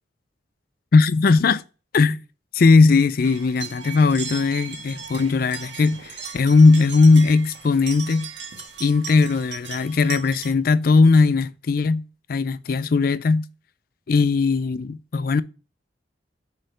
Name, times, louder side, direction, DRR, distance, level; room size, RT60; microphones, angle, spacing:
voice 1, 0.9-1.6 1.9-2.2 2.5-8.3 8.8-12.0 12.3-13.4 14.1-15.4, left 4 dB, 50° left, 0.4 m, -18 dB
sound 1, 3.2-10.5, right 6 dB, 70° right, 1.6 m, -37 dB
6.4 x 4.3 x 5.3 m
head